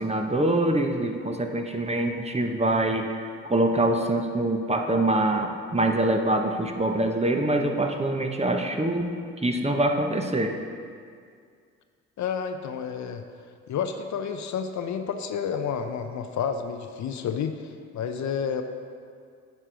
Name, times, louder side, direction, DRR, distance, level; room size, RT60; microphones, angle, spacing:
voice 1, 0.0-9.1 9.4-10.5, right 1 dB, 20° right, 4 dB, 0.9 m, -24 dB
voice 2, 12.2-13.2 13.7-18.6, left 7 dB, 60° left, 7 dB, 0.6 m, -30 dB
9.3 x 4.4 x 5.1 m, 2.2 s
hypercardioid pair, 50°, 33 cm